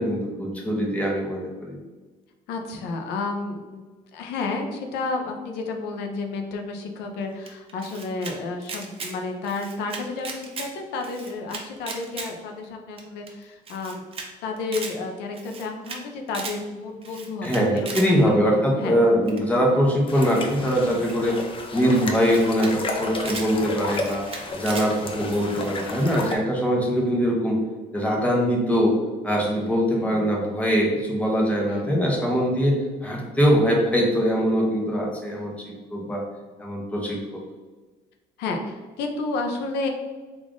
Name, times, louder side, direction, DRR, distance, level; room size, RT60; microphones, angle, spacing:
voice 1, 0.0-1.8 17.4-21.4 21.7-24.2 24.5-27.6 27.9-28.9 29.2-35.5 35.9-36.2 36.6-37.2, equal, 10° left, -2 dB, 0.9 m, -22 dB
voice 2, 2.5-3.8 4.1-14.0 14.4-18.3 18.7-19.0 20.9-21.0 29.9-30.3 31.7-31.9 35.3-35.5 38.4-39.9, left 3 dB, 85° left, 3 dB, 0.5 m, -31 dB
Camera, 7.5-8.3 8.6-9.1 9.4-10.7 11.0-12.3 12.6-12.7 13.0-13.1 13.3-13.4 13.7-14.3 14.6-14.9 15.3-16.0 16.3-16.6 17.0-18.1 19.3-19.5 20.2-21.4 22.0-22.1 22.2-22.7 23.0-23.5 23.9-24.9, right 4 dB, 35° right, 0.6 m, -36 dB
sound 1, 20.1-26.4, left 2 dB, 30° left, 0.6 m, -33 dB
3.6 x 2.4 x 3.6 m, 1.3 s
cardioid pair, 110°, 17 cm